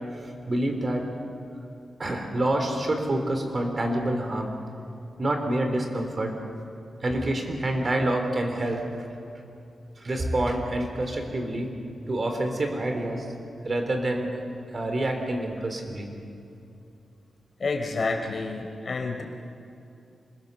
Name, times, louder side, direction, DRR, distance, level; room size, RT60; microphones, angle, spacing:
voice 1, 0.2-1.1 2.0-4.5 5.2-6.4 7.0-8.8 10.0-11.7 12.1-13.3 13.6-14.3 14.7-16.1, right 1 dB, 40° right, 4 dB, 3.7 m, -27 dB
voice 2, 17.6-19.2, left 3 dB, 50° left, 1 dB, 3.9 m, -29 dB
27.0 x 21.0 x 6.8 m, 2.6 s
wide cardioid pair, 95°, 0 cm